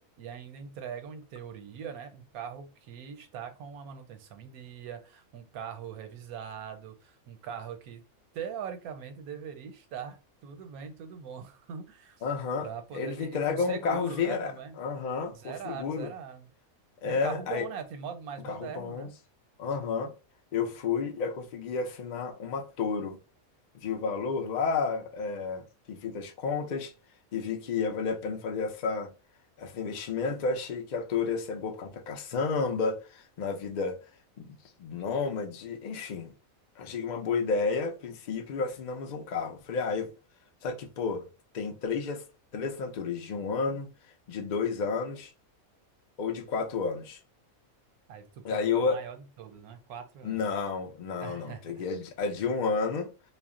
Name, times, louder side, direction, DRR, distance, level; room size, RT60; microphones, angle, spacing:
voice 1, 0.0-8.0 8.3-12.2 12.6-14.8 15.3-16.5 17.0-19.1 48.1-50.4 51.2-51.9 52.4-52.5, right 7 dB, 80° right, 1.1 m, -41 dB
voice 2, 12.2-14.5 14.8-16.1 17.0-17.7 18.4-19.1 19.6-20.1 20.5-23.2 23.8-26.9 27.3-29.1 29.6-34.0 34.4-36.3 36.8-40.1 40.6-41.2 41.5-42.2 42.5-43.9 44.3-45.3 46.2-47.2 48.4-49.0 50.2-53.1, left 5 dB, 75° left, 0.4 m, -31 dB
2.4 x 2.0 x 3.5 m
omnidirectional pair, 1.5 m